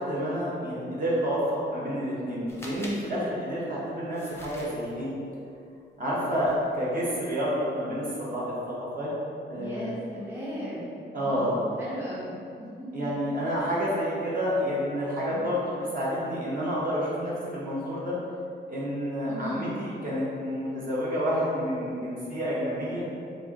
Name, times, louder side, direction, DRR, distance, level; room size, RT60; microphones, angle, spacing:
voice 1, 0.0-5.1 6.0-9.1 9.5-9.9 11.1-11.6 12.9-18.2 18.7-23.2, equal, 45° right, -7 dB, 0.9 m, -29 dB
sound 1, 2.5-3.0 4.1-4.9 6.4-6.6 7.0-7.2, left 1 dB, 15° left, 0.6 m, -44 dB
voice 2, 9.6-13.2 15.3-15.6 19.2-19.7, equal, 10° right, -9 dB, 0.9 m, -37 dB
3.4 x 2.6 x 3.6 m, 2.5 s
wide cardioid pair, 130°, 19 cm